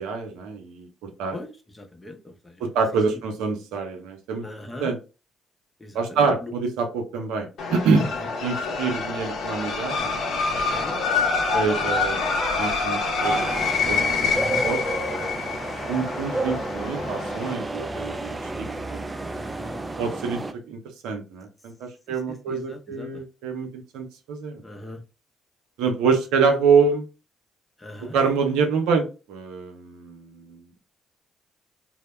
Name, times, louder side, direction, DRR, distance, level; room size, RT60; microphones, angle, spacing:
voice 1, 0.0-1.4 2.6-4.4 4.8-5.0 5.9-8.1 8.4-10.2 11.5-12.2 12.6-14.3 14.6-14.8 15.9-19.0 20.0-24.6 25.8-27.1 28.1-30.6, right 5 dB, 80° right, 4 dB, 0.5 m, -26 dB
voice 2, 1.3-2.7 3.1-3.2 4.4-4.9 5.8-6.5 8.0-8.1 10.4-11.0 14.3-14.7 15.8-16.1 19.3-19.8 22.3-23.2 24.6-25.0 27.8-28.2, left 1 dB, 20° left, 4 dB, 0.7 m, -40 dB
sound 1, 7.6-17.5, left 4 dB, 65° left, 0.6 m, -26 dB
sound 2, 13.2-20.5, right 2 dB, 20° right, 0.4 m, -31 dB
2.1 x 2.0 x 3.1 m, 0.32 s
supercardioid pair, 60°, 0 cm